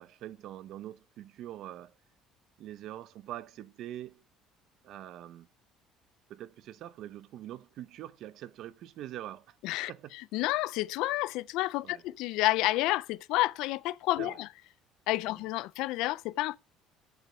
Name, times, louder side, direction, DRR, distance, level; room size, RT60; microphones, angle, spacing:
voice 1, 0.0-1.9 2.6-4.2 4.8-5.5 6.3-9.6 9.9-10.1 11.8-12.0 14.2-14.4, right 12 dB, 60° right, 0.7 m, -44 dB
voice 2, 9.6-14.5 15.1-16.6, left 18 dB, 75° left, 0.4 m, -30 dB
8.1 x 7.0 x 7.5 m
cardioid pair, 140°, 0 cm